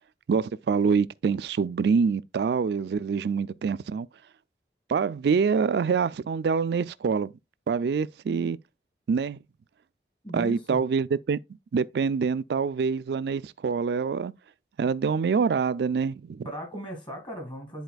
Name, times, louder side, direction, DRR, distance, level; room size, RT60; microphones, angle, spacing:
voice 1, 0.3-4.1 4.9-7.3 7.7-8.6 9.1-9.4 10.3-11.4 11.7-14.3 14.8-16.5, right 5 dB, 70° right, 0.3 m, -25 dB
voice 2, 10.2-10.8 16.4-17.8, equal, 25° left, 2.3 m, -37 dB
10.5 x 4.2 x 2.3 m
head